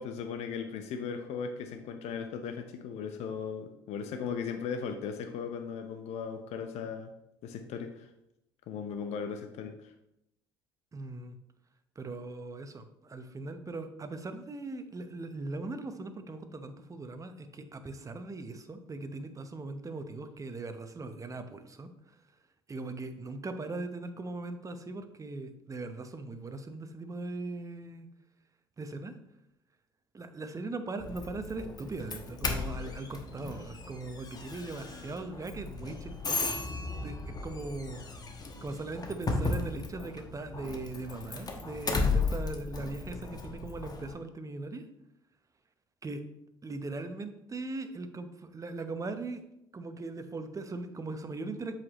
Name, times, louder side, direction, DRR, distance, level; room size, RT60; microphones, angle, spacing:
voice 1, 0.0-7.1 7.4-8.1 8.7-9.9, left 6 dB, 55° left, 6 dB, 0.7 m, -37 dB
voice 2, 10.9-11.4 12.0-21.9 22.7-28.1 28.8-29.1 30.1-36.6 37.0-38.0 38.6-44.8 46.0-46.2 46.6-49.4 49.7-51.7, right 3 dB, 25° right, 8 dB, 0.9 m, -39 dB
Doorbell, 31.0-44.1, left 3 dB, 30° left, 1.2 m, -35 dB
7.6 x 5.9 x 3.1 m, 0.82 s
hypercardioid pair, 60°, 13 cm